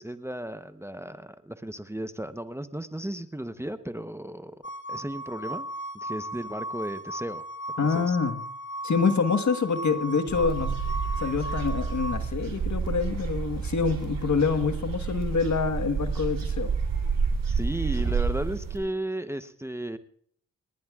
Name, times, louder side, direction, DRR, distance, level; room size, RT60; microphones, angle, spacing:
voice 1, 0.0-4.6 4.9-5.6 5.9-7.4 7.7-8.2 17.5-20.0, right 1 dB, 10° right, 11 dB, 0.8 m, -35 dB
sound 1, 4.6-12.2, equal, 35° left, 1.1 m, -36 dB
voice 2, 7.8-8.4 8.8-10.8 11.2-16.7, left 5 dB, 60° left, 9 dB, 1.4 m, -26 dB
sound 2, 10.3-18.8, right 5 dB, 80° right, 3.1 m, -29 dB
29.0 x 10.5 x 2.4 m, 0.62 s
cardioid pair, 45°, 33 cm